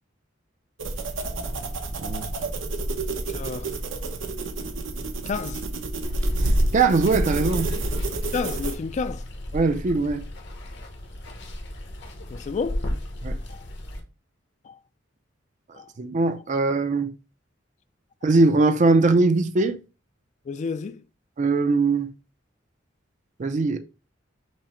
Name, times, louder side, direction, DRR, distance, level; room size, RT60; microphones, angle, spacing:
sound 1, 0.8-8.8, right 2 dB, 85° right, 0.8 m, -28 dB
voice 1, 3.3-3.7 5.3-5.6 8.3-9.2 12.3-12.9 13.5-13.6 14.6-14.8 15.8-15.9 20.5-21.0, left 5 dB, 40° left, 0.3 m, -30 dB
Water, 6.0-14.0, left 1 dB, 65° left, 1.0 m, -34 dB
voice 2, 6.7-7.7 9.5-10.2 13.2-13.4 15.7-17.1 18.2-19.8 21.4-22.1 23.4-23.8, right 3 dB, 40° right, 0.4 m, -21 dB
6.0 x 2.1 x 4.3 m
head